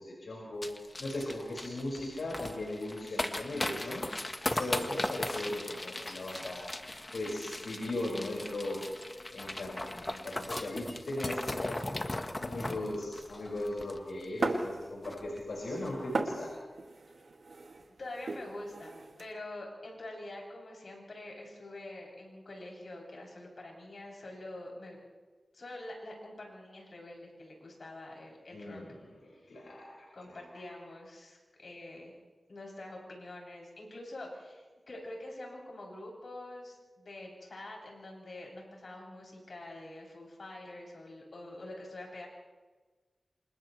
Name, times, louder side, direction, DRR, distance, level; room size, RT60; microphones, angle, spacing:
voice 1, 0.0-4.1 4.4-6.6 7.1-8.8 9.3-11.8 12.3-16.5 28.5-29.0 29.2-30.4, left 1 dB, 85° left, -4 dB, 5.8 m, -38 dB
sound 1, 0.6-14.4 14.7-14.8 15.0-15.4 15.7-15.9, left 1 dB, 25° left, 1.4 m, -38 dB
sound 2, 14.4-15.3 15.5-19.2, right 3 dB, 80° right, 2.3 m, -37 dB
voice 2, 18.0-25.0 25.5-28.8 29.3-29.6 30.1-32.2 32.5-42.3, left 1 dB, 65° left, -2 dB, 7.9 m, -46 dB
28.0 x 27.5 x 3.3 m, 1.3 s
wide cardioid pair, 65°, 0 cm